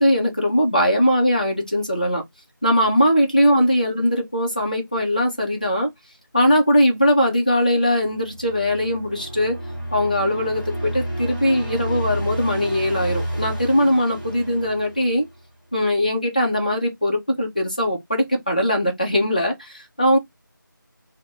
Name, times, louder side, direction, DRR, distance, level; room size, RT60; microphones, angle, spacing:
voice 1, 0.0-2.2 2.6-5.9 6.3-9.6 9.9-15.3 15.7-20.2, equal, 25° left, 0.5 m, -20 dB
sound 1, 8.1-15.5, right 1 dB, 25° right, 0.8 m, -30 dB
2.4 x 2.0 x 3.2 m
figure-of-eight pair, 170°, 11 cm